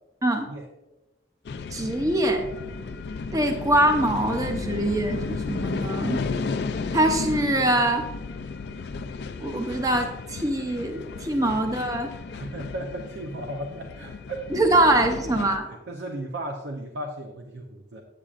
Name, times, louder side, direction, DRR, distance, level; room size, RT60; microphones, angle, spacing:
sound 1, 1.4-15.6, left 4 dB, 65° left, 0.4 m, -33 dB
voice 1, 1.7-2.4 3.3-6.2 6.9-8.1 9.4-12.1 14.5-15.7, right 1 dB, 20° right, 5 dB, 0.6 m, -23 dB
voice 2, 12.3-14.6 15.7-18.0, right 1 dB, 85° right, 3 dB, 0.6 m, -35 dB
8.6 x 8.5 x 2.4 m, 1.0 s
head